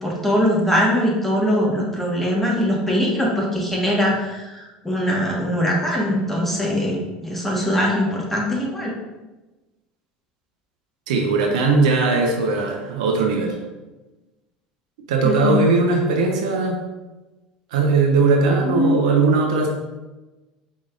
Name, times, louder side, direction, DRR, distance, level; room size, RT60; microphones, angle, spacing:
voice 1, 0.0-8.9 15.2-15.6 18.7-19.2, equal, 5° left, -3 dB, 1.4 m, -22 dB
voice 2, 11.1-13.6 15.1-16.8 17.7-19.7, right 3 dB, 80° right, 2 dB, 0.7 m, -19 dB
4.9 x 3.7 x 2.5 m, 1.1 s
hypercardioid pair, 80°, 4 cm